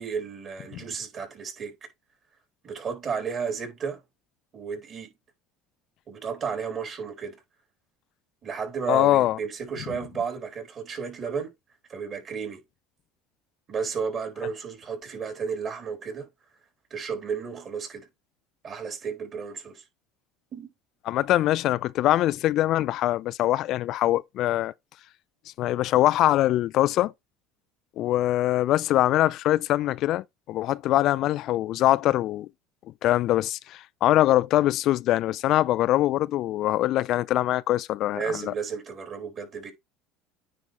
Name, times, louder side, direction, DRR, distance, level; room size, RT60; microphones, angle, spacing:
voice 1, 0.0-1.9 2.6-4.0 4.5-5.1 6.1-7.4 8.4-11.5 11.9-12.6 13.7-16.3 16.9-18.1 18.6-19.8 20.5-20.7 38.1-39.7, right 6 dB, 40° right, 4.2 m, -33 dB
voice 2, 8.9-9.4 21.1-24.7 25.6-27.1 28.0-32.5 33.0-38.5, left 14 dB, 60° left, 0.3 m, -23 dB
9.7 x 3.7 x 3.5 m
supercardioid pair, 95°, 0 cm